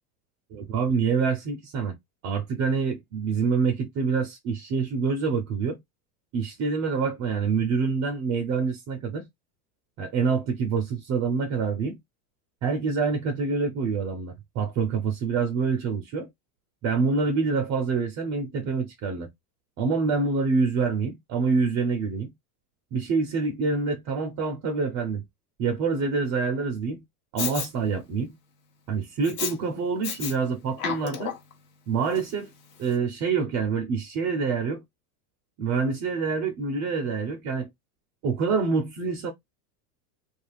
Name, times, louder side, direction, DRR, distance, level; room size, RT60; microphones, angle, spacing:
voice 1, 0.5-1.9 2.2-5.8 6.3-9.3 10.0-12.0 12.6-16.3 16.8-19.3 19.8-22.3 22.9-25.2 25.6-27.0 27.3-28.3 28.9-31.4 31.9-32.5 32.8-34.8 35.6-37.7 38.2-39.3, right 5 dB, 35° right, 0.5 m, -26 dB
Respiratory sounds, 27.4-27.7 29.2-29.5 30.0-30.3 30.7-31.5 32.1-32.2, left 7 dB, 60° left, 0.9 m, -31 dB
2.4 x 2.3 x 3.2 m
supercardioid pair, 130°, 49 cm